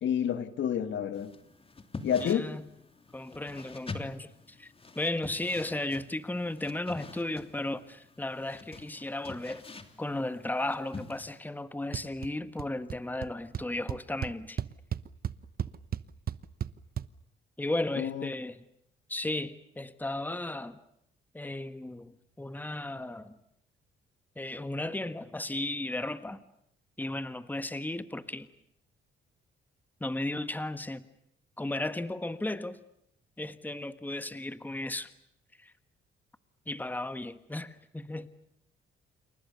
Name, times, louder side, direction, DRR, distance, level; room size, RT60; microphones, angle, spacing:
voice 1, 0.0-1.3 2.0-2.5 18.0-18.3, left 9 dB, 70° left, 1.9 m, -29 dB
sound 1, 1.1-11.4, left 3 dB, 30° left, 3.0 m, -47 dB
voice 2, 2.2-2.6 3.1-9.6 10.0-14.6 17.6-18.6 19.1-20.8 21.3-23.3 24.3-26.4 27.0-28.5 30.0-31.0 31.6-32.8 33.4-35.1 35.6-35.7 36.7-38.3, left 2 dB, 10° left, 1.5 m, -35 dB
sound 2, 11.9-12.3 12.6-13.0 13.2-13.3 13.5-17.1, right 9 dB, 50° right, 1.0 m, -34 dB
29.5 x 28.5 x 6.9 m
cardioid pair, 90°, 20 cm